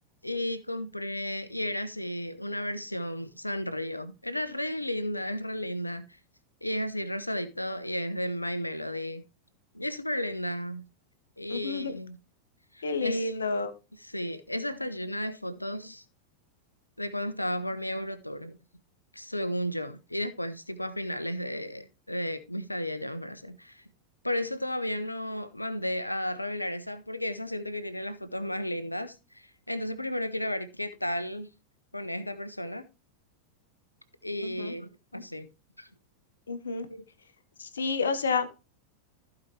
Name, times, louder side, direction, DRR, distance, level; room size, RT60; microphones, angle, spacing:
voice 1, 0.2-6.2 6.6-9.2 9.7-10.8 11.4-12.2 12.7-13.5 14.0-16.0 17.0-18.6 19.1-23.8 24.2-31.5 31.9-32.8 34.2-35.5 35.8-35.9 36.9-37.0, left 1 dB, 85° left, 0.9 m, -33 dB
voice 2, 11.5-12.0 12.8-13.7 34.4-34.7 35.1-35.2 36.5-36.9 37.6-38.5, left 4 dB, 70° left, 1.3 m, -30 dB
15.0 x 5.2 x 3.2 m
figure-of-eight pair, 90°, 0 cm